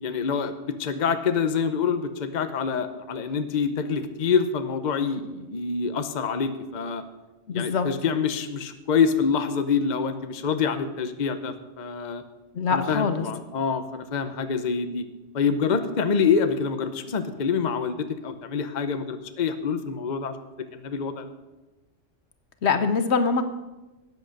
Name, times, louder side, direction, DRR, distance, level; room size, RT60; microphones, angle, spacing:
voice 1, 0.0-7.0 7.5-12.2 12.7-15.1 15.3-20.3 20.7-21.3, left 6 dB, 40° left, 9 dB, 0.8 m, -26 dB
voice 2, 7.5-7.9 12.5-13.3 22.6-23.4, left 5 dB, 65° left, 10 dB, 1.1 m, -23 dB
13.0 x 8.9 x 6.6 m, 1.1 s
omnidirectional pair, 1.3 m